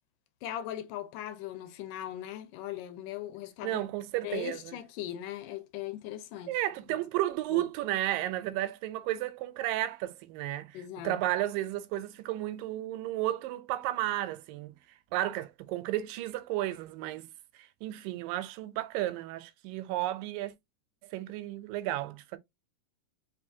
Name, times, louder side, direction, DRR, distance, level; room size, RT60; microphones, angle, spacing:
voice 1, 0.4-3.8 4.2-6.6 6.9-7.0 7.5-7.7 10.7-11.2, left 12 dB, 80° left, 2.2 m, -39 dB
voice 2, 3.6-4.8 6.5-10.8 11.0-14.7 15.1-17.3 17.8-20.5 21.1-22.4, right 14 dB, 85° right, 2.3 m, -33 dB
5.2 x 3.3 x 2.7 m
omnidirectional pair, 3.8 m